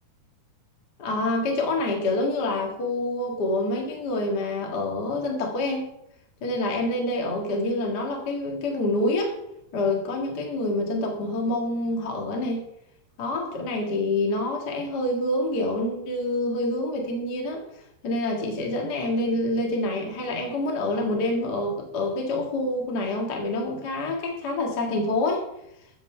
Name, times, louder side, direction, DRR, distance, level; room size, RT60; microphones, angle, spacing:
voice 1, 1.0-5.9 6.4-9.3 9.7-12.6 13.2-17.6 18.0-25.5, left 2 dB, 45° left, 0 dB, 1.3 m, -27 dB
13.5 x 7.5 x 4.5 m, 0.78 s
omnidirectional pair, 5.0 m